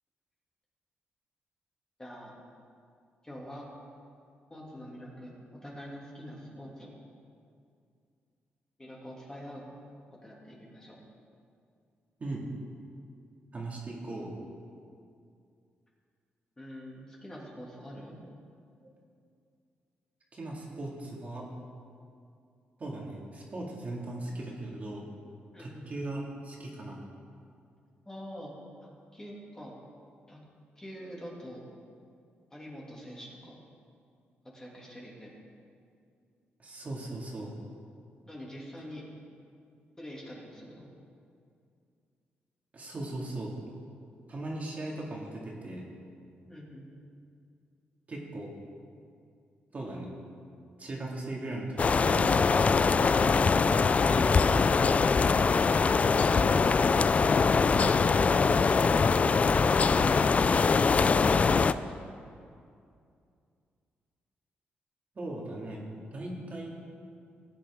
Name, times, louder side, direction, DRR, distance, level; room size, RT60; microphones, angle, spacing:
voice 1, 2.0-2.4 3.2-3.7 4.5-6.9 8.8-9.7 10.1-11.0 16.6-18.2 25.5-25.9 28.0-28.5 28.8-29.8 30.3-30.4 30.8-31.7 32.5-33.6 34.5-35.3 38.2-39.0 40.0-40.9 46.5-47.0, equal, 15° left, -4 dB, 2.5 m, -45 dB
voice 2, 13.5-14.3 18.7-18.9 20.3-21.5 22.8-25.0 25.6-27.0 36.6-37.6 42.7-43.5 44.3-45.9 48.1-48.5 49.7-50.1 50.8-53.3 65.2-65.9 66.1-66.8, right 2 dB, 40° right, -3 dB, 2.1 m, -38 dB
sound 1, 51.8-61.7, left 5 dB, 35° left, 0.3 m, -23 dB
17.0 x 8.8 x 3.6 m, 2.4 s
cardioid pair, 105°, 4 cm